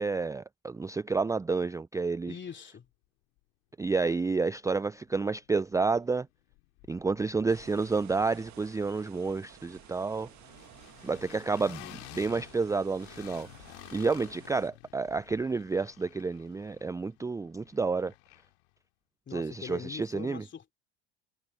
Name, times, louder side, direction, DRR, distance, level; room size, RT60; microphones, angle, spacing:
voice 1, 0.0-2.3 3.8-6.3 6.9-10.3 11.0-13.5 13.9-18.1 19.3-20.4, right 4 dB, 10° right, 0.4 m, -30 dB
voice 2, 2.3-2.9 19.3-20.7, left 7 dB, 35° left, 3.0 m, -43 dB
sound 1, 5.1-6.2 6.5-18.7, left 27 dB, 75° left, 2.4 m, -52 dB
sound 2, 7.5-14.7, right 15 dB, 60° right, 1.8 m, -54 dB
hypercardioid pair, 75°, 32 cm